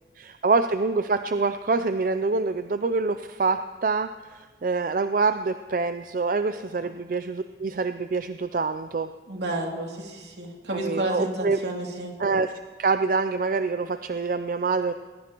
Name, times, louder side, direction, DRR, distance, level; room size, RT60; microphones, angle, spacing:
voice 1, 0.2-9.1 10.7-11.6 12.2-12.5 12.8-14.9, right 4 dB, 50° right, 10 dB, 0.4 m, -26 dB
voice 2, 9.3-12.1, right 1 dB, 75° right, 0 dB, 2.7 m, -31 dB
21.5 x 20.5 x 3.0 m, 1.4 s
head